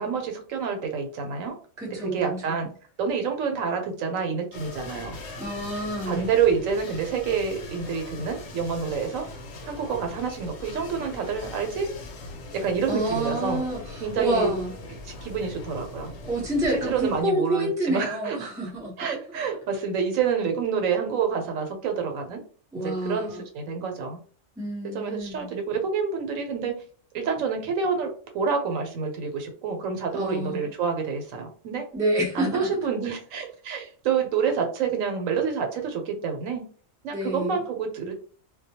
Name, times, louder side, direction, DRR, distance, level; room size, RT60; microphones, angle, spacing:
voice 1, 0.0-1.5 2.0-2.7 3.0-5.2 6.1-9.3 9.6-11.9 12.5-13.6 14.0-14.5 15.1-16.1 16.8-18.5 19.0-22.4 22.7-24.2 24.9-26.7 27.1-31.9 32.3-36.7 37.0-38.1, right 6 dB, 80° right, 4 dB, 1.0 m, -28 dB
voice 2, 1.8-2.5 5.4-6.2 12.8-14.7 16.2-19.0 22.7-23.4 24.6-25.5 30.1-30.7 31.9-32.7 37.1-37.6, right 1 dB, 5° right, -3 dB, 0.4 m, -28 dB
sound 1, 4.5-17.2, left 2 dB, 75° left, 1.0 m, -40 dB
2.2 x 2.2 x 2.7 m, 0.43 s
omnidirectional pair, 1.4 m